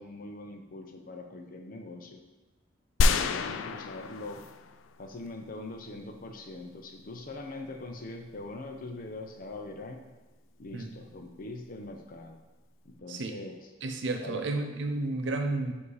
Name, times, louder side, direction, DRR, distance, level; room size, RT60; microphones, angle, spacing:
voice 1, 0.0-2.2 3.0-4.5 5.0-10.0 10.6-12.4 12.8-13.6 14.2-14.5, left 2 dB, 45° left, 4 dB, 0.6 m, -42 dB
sound 1, 3.0-4.9 5.3-5.4, left 3 dB, 85° left, 0.3 m, -28 dB
voice 2, 13.8-15.7, right 2 dB, 65° right, 4 dB, 0.6 m, -32 dB
7.0 x 2.8 x 4.8 m, 1.2 s
head